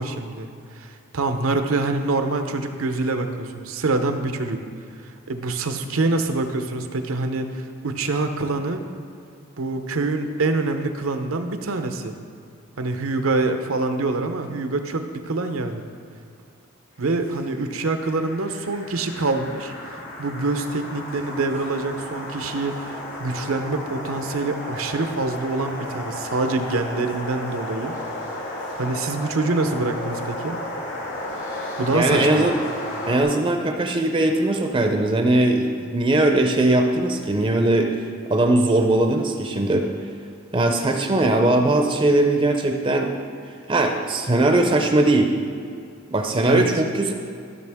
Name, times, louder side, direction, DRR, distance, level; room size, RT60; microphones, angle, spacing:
voice 1, 0.0-4.6 5.0-8.8 9.6-12.1 12.8-15.8 17.0-27.9 28.8-30.6 31.8-32.5 46.4-46.7, right 3 dB, 80° right, 7 dB, 0.7 m, -25 dB
sound 1, 17.1-33.2, left 1 dB, 65° left, 2.6 m, -34 dB
voice 2, 31.9-32.5 33.0-37.9 38.3-39.9 40.5-43.1 43.7-45.3 46.1-47.1, right 2 dB, 25° right, 4 dB, 0.5 m, -20 dB
13.5 x 6.6 x 3.5 m, 2.4 s
head